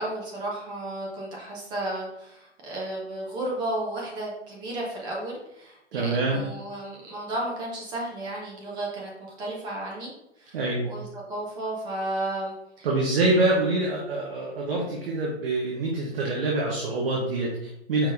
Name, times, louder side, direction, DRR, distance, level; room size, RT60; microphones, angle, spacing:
voice 1, 0.0-12.9, right 1 dB, 10° right, -3 dB, 0.6 m, -33 dB
voice 2, 5.9-6.4 10.5-10.9 12.8-18.1, right 2 dB, 55° right, -3 dB, 1.1 m, -25 dB
5.2 x 3.6 x 2.5 m, 0.86 s
hypercardioid pair, 140°, 35 cm